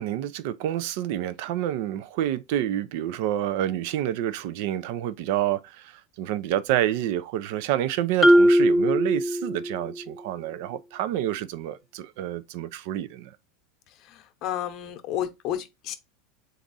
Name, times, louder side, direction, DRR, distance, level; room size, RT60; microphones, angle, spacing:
voice 1, 0.0-13.3, right 12 dB, 65° right, 0.4 m, -28 dB
Marimba xylophone, 8.2-10.0, equal, 10° left, 0.4 m, -19 dB
voice 2, 14.0-15.9, left 11 dB, 50° left, 0.8 m, -32 dB
3.5 x 2.6 x 4.0 m
supercardioid pair, 120°, 0 cm